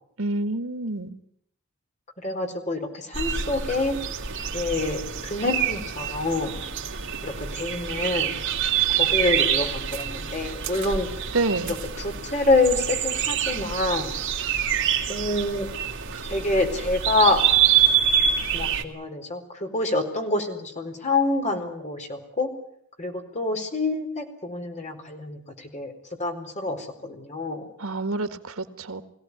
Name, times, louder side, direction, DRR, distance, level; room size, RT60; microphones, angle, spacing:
voice 1, 0.2-1.2 11.3-11.8 27.8-29.0, right 2 dB, 90° right, 10 dB, 1.8 m, -28 dB
voice 2, 2.2-4.0 4.5-6.7 7.2-8.4 9.0-11.1 11.7-14.2 15.1-15.7 16.3-17.4 18.5-22.5 23.0-25.9 26.2-27.7, left 2 dB, 35° left, 4 dB, 4.4 m, -26 dB
sound 1, 3.1-18.8, right 9 dB, 65° right, 2.8 m, -26 dB
22.5 x 17.0 x 9.8 m, 0.71 s
head